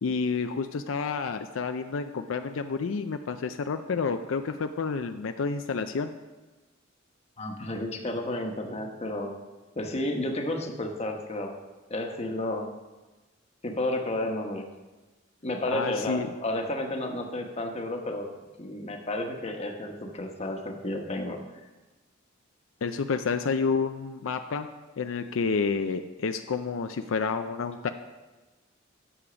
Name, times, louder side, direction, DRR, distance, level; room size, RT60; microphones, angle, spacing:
voice 1, 0.0-6.1 15.7-16.3 22.8-24.7 25.0-27.9, left 5 dB, 80° left, 8 dB, 0.5 m, -29 dB
voice 2, 7.4-9.3 9.8-11.5 11.9-12.7 13.6-14.7 15.4-18.3 18.6-21.4, left 1 dB, 35° left, 3 dB, 1.1 m, -31 dB
10.0 x 7.0 x 5.0 m, 1.2 s
head